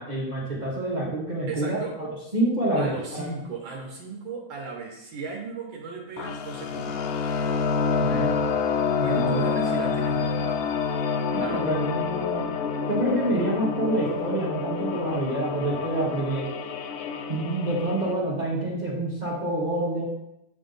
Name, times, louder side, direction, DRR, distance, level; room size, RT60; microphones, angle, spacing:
voice 1, 0.0-1.8 2.3-3.3 8.0-8.4 9.0-9.4 11.3-12.5 12.9-16.5 17.3-20.0, right 1 dB, 30° right, -5 dB, 0.9 m, -27 dB
voice 2, 1.5-1.9 2.8-7.1 9.0-10.6 11.3-11.7, right 4 dB, 65° right, 0 dB, 1.5 m, -36 dB
sound 1, 6.2-18.1, left 5 dB, 90° left, 1.6 m, -27 dB
8.4 x 3.5 x 3.8 m, 0.83 s
omnidirectional pair, 2.4 m